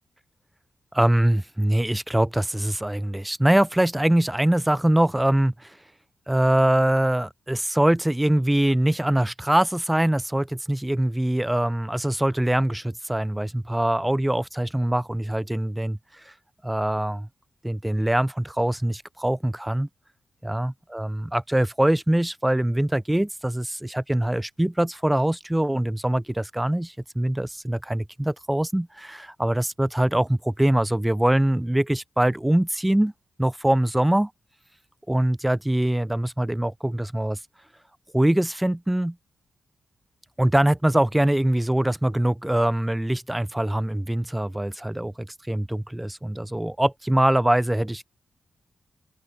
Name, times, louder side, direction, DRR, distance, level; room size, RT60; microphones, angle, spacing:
voice 1, 0.9-5.8 6.3-16.3 16.6-17.3 17.6-19.9 20.4-33.1 33.4-34.3 35.1-37.4 38.1-39.2 40.4-48.1, right 1 dB, 10° right, 0.3 m, -23 dB
supercardioid pair, 45°, 0 cm